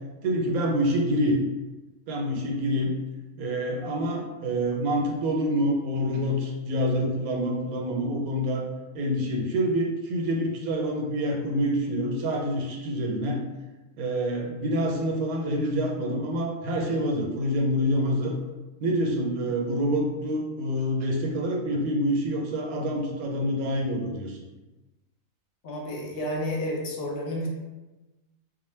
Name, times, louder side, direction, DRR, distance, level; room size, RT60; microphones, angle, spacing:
voice 1, 0.2-1.4 2.1-2.9 3.4-8.7 8.9-13.4 14.0-18.3 18.8-24.4, equal, 90° right, 0 dB, 1.1 m, -27 dB
voice 2, 25.6-27.5, left 1 dB, 60° left, -2 dB, 0.6 m, -31 dB
2.4 x 2.1 x 3.1 m, 1.1 s
omnidirectional pair, 1.5 m